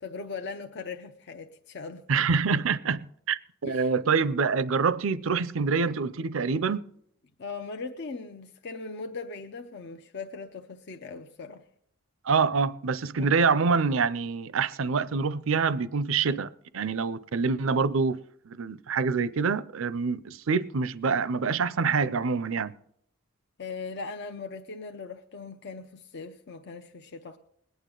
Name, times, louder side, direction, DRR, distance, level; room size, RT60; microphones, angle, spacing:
voice 1, 0.0-2.0 3.6-3.9 7.4-11.6 13.2-13.3 23.6-27.4, left 4 dB, 50° left, 0.6 m, -39 dB
voice 2, 2.1-6.8 12.2-22.7, right 5 dB, 65° right, 0.5 m, -26 dB
20.5 x 9.2 x 3.8 m
head